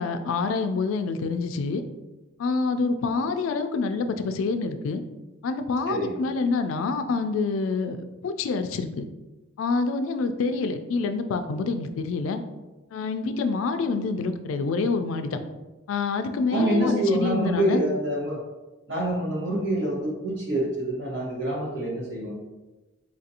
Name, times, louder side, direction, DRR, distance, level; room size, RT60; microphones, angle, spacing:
voice 1, 0.0-1.8 2.4-5.0 5.4-8.0 8.2-9.1 9.6-12.4 12.9-15.4 15.9-17.8, left 4 dB, 75° left, 9 dB, 0.3 m, -27 dB
voice 2, 16.5-18.4 18.9-22.3, right 1 dB, 60° right, -3 dB, 1.2 m, -26 dB
4.5 x 2.5 x 2.7 m, 1.1 s
head